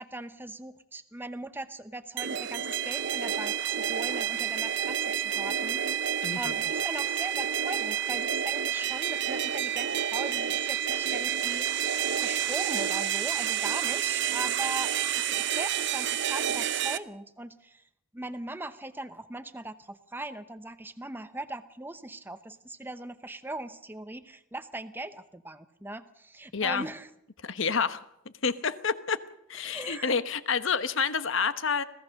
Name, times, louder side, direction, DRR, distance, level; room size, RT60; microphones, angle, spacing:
voice 1, 0.0-6.1 6.3-11.7 12.1-17.8 18.1-27.1 29.6-30.1, right 2 dB, 10° right, 10 dB, 0.8 m, -40 dB
sound 1, 2.2-17.0, right 9 dB, 55° right, 0.7 m, -29 dB
voice 2, 6.2-6.5 26.5-26.9 27.4-28.0 28.4-29.2 29.5-31.8, left 5 dB, 60° left, 13 dB, 1.1 m, -28 dB
26.0 x 16.5 x 6.5 m, 0.77 s
head